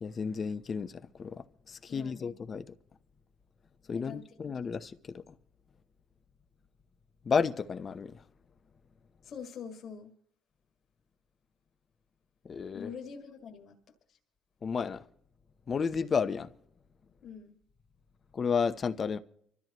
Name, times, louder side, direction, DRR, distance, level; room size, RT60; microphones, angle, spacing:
voice 1, 0.0-2.7 3.9-5.4 7.2-8.2 12.4-12.9 14.6-15.0 15.7-16.5 18.3-19.2, left 6 dB, 40° left, 0.8 m, -32 dB
voice 2, 1.9-2.3 3.9-4.3 4.6-4.7 9.2-10.1 12.7-13.8 14.1-14.2 17.2-17.6, left 6 dB, 60° left, 2.0 m, -44 dB
25.5 x 13.5 x 3.0 m
cardioid pair, 85°, 0 cm